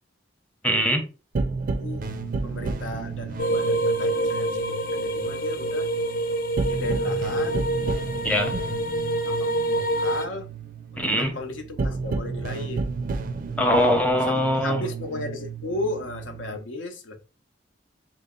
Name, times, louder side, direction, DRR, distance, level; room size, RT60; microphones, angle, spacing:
voice 1, 0.6-1.0 8.2-8.5 11.0-11.3 13.6-14.8, equal, 5° left, 0.6 m, -22 dB
sound 1, 1.3-16.6, right 4 dB, 45° right, 0.4 m, -32 dB
voice 2, 1.7-2.0 2.4-5.9 6.7-7.7 9.3-10.5 10.9-13.0 14.2-17.2, left 2 dB, 80° left, 0.7 m, -35 dB
sound 2, 3.4-10.3, right 1 dB, 45° left, 0.4 m, -26 dB
3.8 x 2.0 x 3.7 m
head